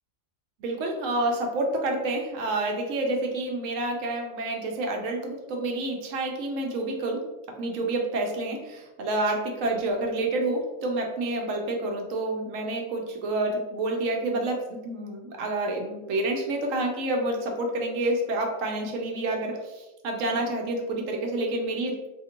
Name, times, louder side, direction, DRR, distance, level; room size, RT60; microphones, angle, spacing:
voice 1, 0.6-7.2 7.6-22.1, right 2 dB, 80° right, 2 dB, 1.0 m, -28 dB
2.8 x 2.5 x 2.8 m, 1.0 s
omnidirectional pair, 1.3 m